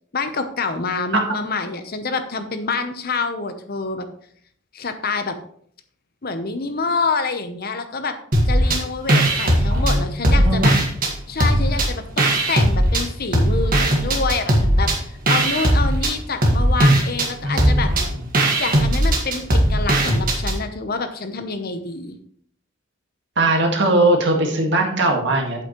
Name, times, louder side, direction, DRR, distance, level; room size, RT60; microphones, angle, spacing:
voice 1, 0.1-4.0 4.7-5.4 6.2-8.2 8.5-10.7 11.3-17.9 18.6-22.2, left 4 dB, 50° left, 9 dB, 0.9 m, -27 dB
sound 1, 8.3-8.8 9.1-11.1 11.4-13.0 13.3-20.6, right 1 dB, 45° right, 1.8 m, -18 dB
voice 2, 9.7-10.8 17.4-18.2 23.4-25.6, right 2 dB, 60° right, 2 dB, 1.8 m, -20 dB
8.3 x 8.1 x 3.1 m, 0.62 s
head